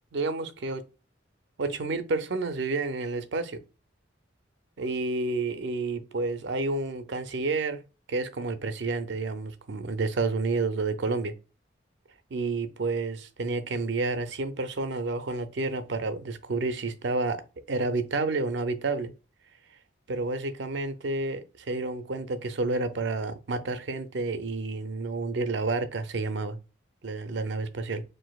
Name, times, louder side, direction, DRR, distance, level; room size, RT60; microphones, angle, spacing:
voice 1, 0.1-0.8 1.6-3.6 4.8-7.8 8.1-11.3 12.3-17.4 17.7-19.1 20.1-26.6 27.0-28.0, right 3 dB, 65° right, 0.5 m, -30 dB
6.1 x 2.6 x 2.3 m
head